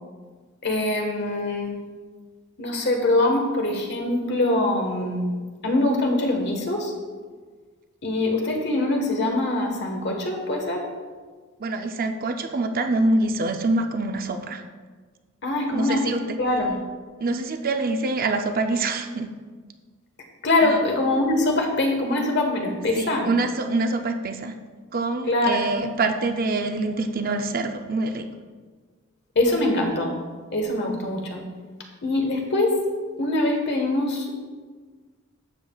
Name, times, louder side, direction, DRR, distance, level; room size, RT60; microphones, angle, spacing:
voice 1, 0.6-1.7 2.6-5.3 5.6-6.9 8.0-10.8 15.4-16.1 16.4-16.8 20.4-23.3 25.3-25.8 29.3-30.1 30.5-31.4 32.0-32.8 33.2-34.4, left 2 dB, 55° left, 2 dB, 1.4 m, -23 dB
voice 2, 11.6-14.6 15.7-16.4 17.2-19.3 20.6-20.8 23.0-24.6 24.9-28.3, right 2 dB, 45° right, 6 dB, 0.5 m, -25 dB
12.0 x 7.4 x 2.4 m, 1.5 s
head